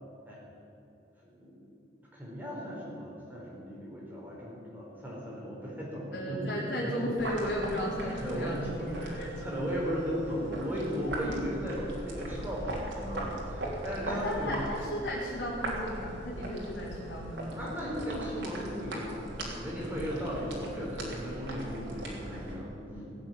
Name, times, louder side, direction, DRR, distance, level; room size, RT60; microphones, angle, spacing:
voice 1, 1.3-1.7 2.1-7.1 8.2-14.6 17.3-23.2, equal, 10° right, -5 dB, 4.7 m, -36 dB
voice 2, 6.1-9.3 14.1-17.7, equal, 75° left, -8 dB, 3.6 m, -35 dB
sound 1, 7.2-22.6, right 1 dB, 90° right, 3.5 m, -39 dB
18.5 x 8.1 x 9.0 m, 2.9 s
head